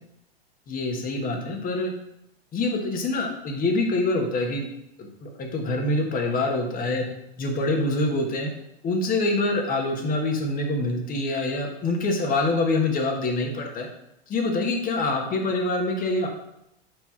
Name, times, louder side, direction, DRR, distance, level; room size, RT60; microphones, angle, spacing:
voice 1, 0.7-1.9 2.5-4.6 5.0-7.1 7.4-8.5 8.8-13.9 14.3-16.3, left 2 dB, 25° left, 2 dB, 1.2 m, -25 dB
6.0 x 3.4 x 5.7 m, 0.81 s
hypercardioid pair, 120°, 31 cm